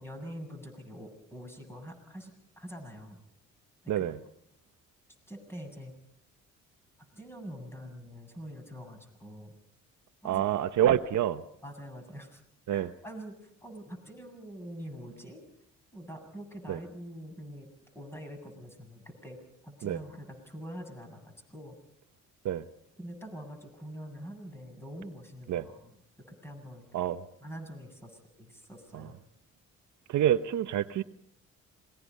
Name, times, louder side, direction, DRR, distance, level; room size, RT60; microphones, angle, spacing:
voice 1, 0.0-3.2 3.8-4.0 5.3-5.9 7.0-9.5 10.2-10.4 11.6-12.4 12.7-15.4 15.9-17.7 17.9-19.4 19.6-21.8 23.0-26.9 27.4-29.2, equal, 10° left, 3 dB, 7.6 m, -45 dB
voice 2, 3.9-4.2 10.2-11.4 12.7-12.9 16.7-16.8 19.8-20.0 22.4-22.6 25.5-25.7 26.9-27.2 28.9-29.1 30.1-31.0, right 11 dB, 75° right, 10 dB, 1.0 m, -27 dB
27.5 x 21.0 x 5.4 m, 0.70 s
cardioid pair, 90°, 30 cm